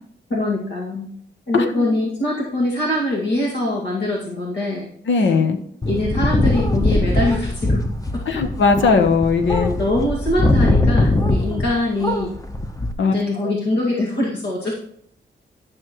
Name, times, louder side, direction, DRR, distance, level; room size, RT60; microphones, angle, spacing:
voice 1, 0.3-1.1 1.5-4.9 5.9-7.9 9.8-12.3 13.0-14.7, left 1 dB, 70° left, -4 dB, 2.1 m, -23 dB
voice 2, 1.5-1.9 5.1-5.6 8.3-9.7 13.0-13.1 13.4-13.5, left 4 dB, 85° left, 6 dB, 1.0 m, -18 dB
sound 1, 5.8-11.8 12.0-12.9, left 2 dB, 20° left, 0.9 m, -20 dB
12.0 x 6.3 x 3.1 m, 0.65 s
cardioid pair, 90°, 19 cm